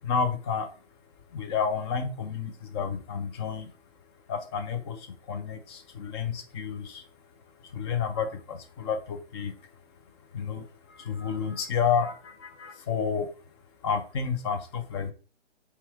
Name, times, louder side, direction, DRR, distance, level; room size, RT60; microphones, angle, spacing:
voice 1, 0.0-0.7 1.3-3.7 4.3-5.0 5.3-7.0 7.7-9.5 10.3-10.7 11.0-13.3 13.8-15.1, left 6 dB, 25° left, 8 dB, 0.8 m, -30 dB
5.8 x 4.7 x 3.5 m, 0.36 s
figure-of-eight pair, 135°, 34 cm